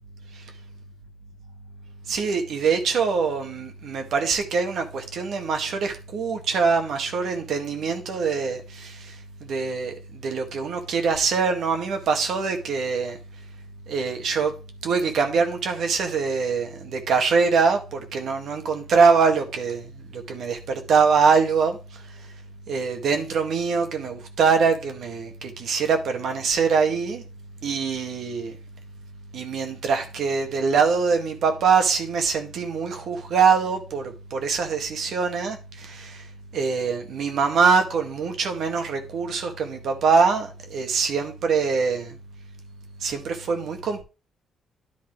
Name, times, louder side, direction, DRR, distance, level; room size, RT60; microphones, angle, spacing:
voice 1, 2.1-9.2 9.4-13.2 13.9-14.5 14.8-21.8 22.7-27.2 27.6-28.5 29.3-36.2 36.5-42.2 43.0-44.0, right 5 dB, 70° right, 1.9 m, -23 dB
10.5 x 4.2 x 4.7 m
cardioid pair, 90°, 0 cm